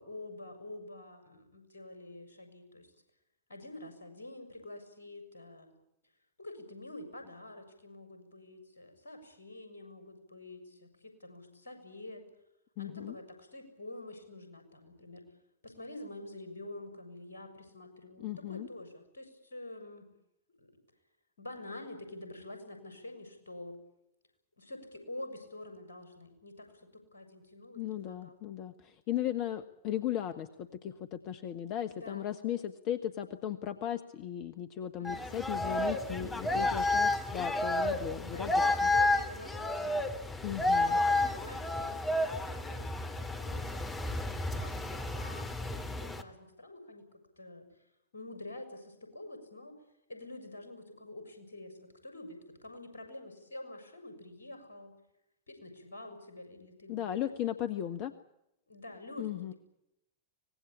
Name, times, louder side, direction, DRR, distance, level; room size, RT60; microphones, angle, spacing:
voice 1, 0.0-2.9 3.5-5.7 6.4-12.2 12.8-15.2 15.6-20.1 20.6-20.7 21.4-23.8 24.6-28.4 31.9-32.3 35.0-35.4 36.1-36.9 38.2-40.3 40.8-47.1 47.4-47.9 48.1-49.8 50.1-54.9 55.5-57.1 58.7-59.3, left 1 dB, 70° left, 6 dB, 6.5 m, -47 dB
voice 2, 12.8-13.1 18.2-18.7 27.8-38.5 38.8-38.9 40.4-41.0 56.9-58.1 59.2-59.5, left 11 dB, 40° left, 10 dB, 1.3 m, -36 dB
sound 1, 35.0-46.2, left 2 dB, 15° left, 2.8 m, -31 dB
25.0 x 19.5 x 8.6 m, 0.84 s
figure-of-eight pair, 90°, 0 cm